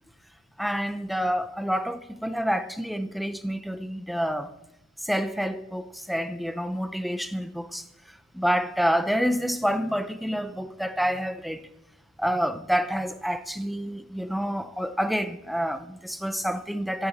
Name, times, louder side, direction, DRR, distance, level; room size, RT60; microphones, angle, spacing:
voice 1, 0.6-4.5 5.0-7.9 8.3-11.7 12.2-17.1, equal, ahead, 0.6 m, -28 dB
13.0 x 6.8 x 8.1 m
head